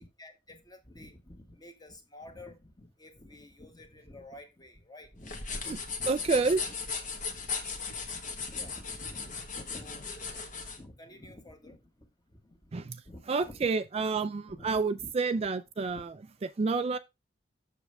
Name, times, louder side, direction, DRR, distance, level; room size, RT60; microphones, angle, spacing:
voice 1, 0.0-5.7 6.0-6.3 6.7-6.8 8.1-10.2 10.7-13.6 14.5-15.1 15.9-16.0, left 1 dB, 25° left, 1.5 m, -51 dB
sound 1, 5.2-10.8, left 5 dB, 45° left, 1.3 m, -37 dB
voice 2, 6.1-6.6 12.7-13.0 13.3-16.1 16.6-17.0, right 4 dB, 35° right, 0.4 m, -29 dB
7.0 x 6.7 x 3.4 m
head